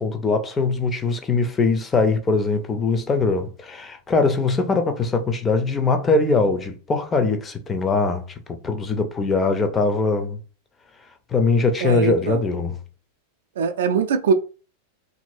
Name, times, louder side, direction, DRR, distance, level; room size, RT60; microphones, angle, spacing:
voice 1, 0.0-10.4 11.3-12.8, left 3 dB, 20° left, 0.5 m, -22 dB
voice 2, 11.8-12.4 13.6-14.3, right 5 dB, 60° right, 0.4 m, -22 dB
2.8 x 2.6 x 2.7 m
figure-of-eight pair, 90°, 0 cm